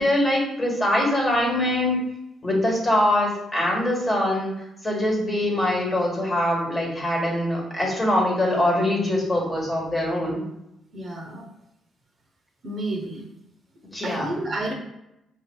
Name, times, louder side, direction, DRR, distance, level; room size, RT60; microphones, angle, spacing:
voice 1, 0.0-2.0 2.4-4.5 4.8-10.4 13.9-14.4, left 1 dB, 25° left, -2 dB, 1.3 m, -23 dB
voice 2, 10.9-11.4 12.6-13.3 14.0-14.7, right 1 dB, 50° right, 0 dB, 0.9 m, -31 dB
5.0 x 2.7 x 2.2 m, 0.86 s
cardioid pair, 90°, 0 cm